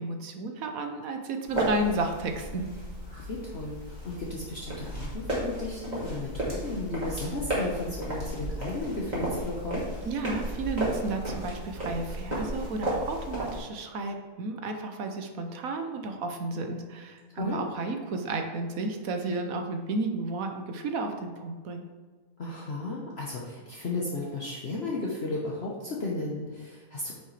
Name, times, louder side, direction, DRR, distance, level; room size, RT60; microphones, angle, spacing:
voice 1, 0.0-2.7 10.0-21.9, right 2 dB, 70° right, 5 dB, 1.3 m, -32 dB
sound 1, 1.5-13.6, right 1 dB, 30° right, 2.3 m, -34 dB
voice 2, 3.1-9.8 17.3-17.7 22.4-27.1, left 2 dB, 50° left, -4 dB, 1.2 m, -34 dB
8.9 x 6.6 x 3.3 m, 1.4 s
omnidirectional pair, 1.5 m